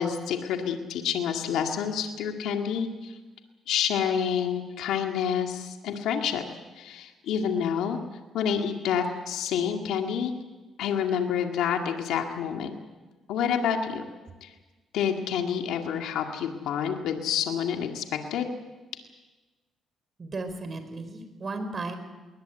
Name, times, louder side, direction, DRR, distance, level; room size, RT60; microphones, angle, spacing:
voice 1, 0.0-3.2 3.7-6.4 6.8-8.0 8.3-10.3 10.8-12.7 13.3-14.0 14.4-14.5 14.9-18.0 18.3-18.5, left 8 dB, 85° left, 3 dB, 2.0 m, -28 dB
voice 2, 20.2-22.0, right 3 dB, 40° right, 8 dB, 4.5 m, -35 dB
21.0 x 20.0 x 8.2 m, 1.2 s
cardioid pair, 90°, 0 cm